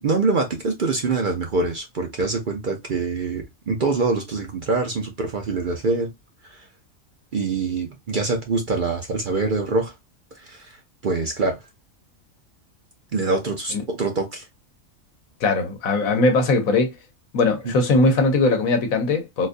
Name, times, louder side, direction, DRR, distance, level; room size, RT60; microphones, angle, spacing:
voice 1, 0.0-6.1 6.4-6.7 7.3-9.9 10.4-11.6 13.1-14.5 17.6-17.7, right 3 dB, 50° right, 0.7 m, -24 dB
voice 2, 15.4-16.9 17.3-19.5, left 3 dB, 80° left, 1.3 m, -20 dB
4.0 x 2.5 x 2.5 m
omnidirectional pair, 1.4 m